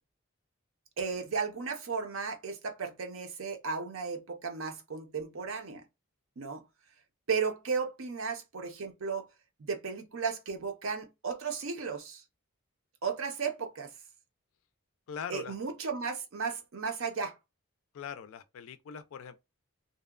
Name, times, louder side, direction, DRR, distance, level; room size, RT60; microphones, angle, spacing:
voice 1, 1.0-5.8 6.4-6.6 7.3-9.3 9.6-12.2 13.0-13.9 15.3-17.4, right 5 dB, 65° right, 0.6 m, -35 dB
voice 2, 15.1-15.5 17.9-19.4, left 7 dB, 70° left, 0.3 m, -41 dB
2.7 x 2.1 x 2.3 m
head